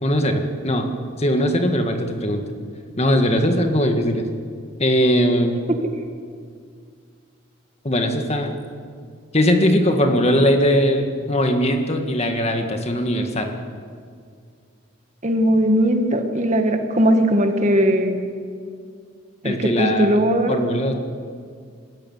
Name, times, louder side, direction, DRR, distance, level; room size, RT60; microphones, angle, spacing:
voice 1, 0.0-0.9 1.2-2.4 3.0-4.3 4.8-5.6 7.8-8.5 9.3-13.5 19.4-20.2 20.5-20.9, equal, 30° left, 5 dB, 1.8 m, -20 dB
voice 2, 15.2-18.2 19.4-20.6, equal, 35° right, 5 dB, 1.8 m, -19 dB
23.5 x 14.0 x 9.6 m, 2.1 s
head